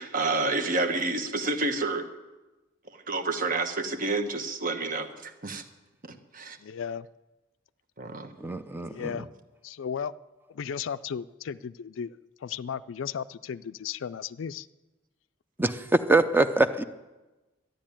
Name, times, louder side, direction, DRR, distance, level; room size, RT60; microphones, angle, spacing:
voice 1, 0.0-2.0 3.1-5.6 6.0-6.6 8.0-8.3, right 3 dB, 45° right, 8 dB, 1.2 m, -29 dB
voice 2, 6.6-7.1 8.9-9.3 9.6-10.1 10.5-12.1 12.4-14.7, left 7 dB, 75° left, 14 dB, 0.4 m, -35 dB
voice 3, 8.4-9.2 15.6-16.8, right 2 dB, 10° right, 10 dB, 0.6 m, -24 dB
12.0 x 10.5 x 8.9 m, 1.1 s
head